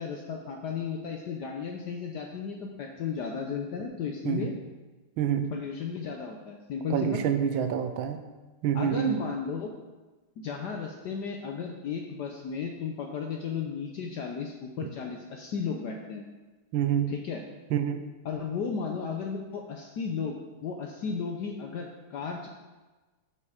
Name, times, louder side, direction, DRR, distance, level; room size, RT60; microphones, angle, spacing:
voice 1, 0.0-4.5 5.5-7.2 8.7-9.7 10.4-16.2 17.1-17.4 18.2-22.5, left 6 dB, 65° left, 2 dB, 1.2 m, -34 dB
voice 2, 5.2-5.5 6.9-8.2 8.6-9.2 14.8-14.9 16.7-17.1 17.7-18.1, right 9 dB, 80° right, 8 dB, 1.5 m, -27 dB
8.5 x 7.2 x 5.0 m, 1.2 s
omnidirectional pair, 2.3 m